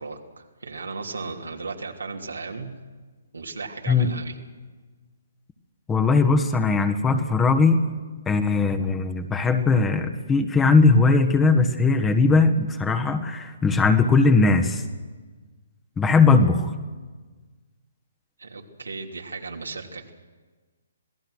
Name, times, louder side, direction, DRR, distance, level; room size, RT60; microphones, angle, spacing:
voice 1, 0.0-2.7 3.3-4.4 18.4-20.1, right 4 dB, 90° right, 1 dB, 3.0 m, -35 dB
voice 2, 5.9-7.8 8.3-14.8 16.0-16.7, left 4 dB, 15° left, 6 dB, 1.5 m, -19 dB
26.5 x 17.5 x 6.4 m, 1.4 s
hypercardioid pair, 140°, 0 cm